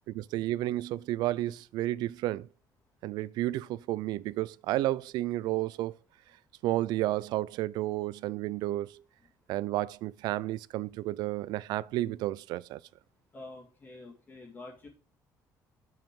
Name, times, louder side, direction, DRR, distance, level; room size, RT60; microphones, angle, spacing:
voice 1, 0.1-2.5 3.0-6.0 6.6-9.0 9.5-12.8, right 16 dB, 80° right, 0.4 m, -31 dB
voice 2, 13.3-14.9, left 2 dB, 25° left, 1.9 m, -47 dB
7.8 x 7.2 x 3.7 m
cardioid pair, 175°, 7 cm